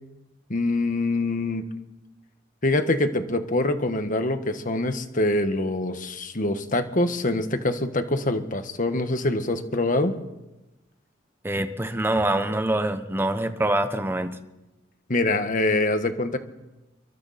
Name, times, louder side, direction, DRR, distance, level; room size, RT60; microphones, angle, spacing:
voice 1, 0.5-1.6 2.6-10.1 15.1-16.4, left 2 dB, 45° left, 8 dB, 1.6 m, -24 dB
voice 2, 11.4-14.4, right 1 dB, 10° right, 9 dB, 1.1 m, -25 dB
26.5 x 23.5 x 4.3 m, 1.0 s
head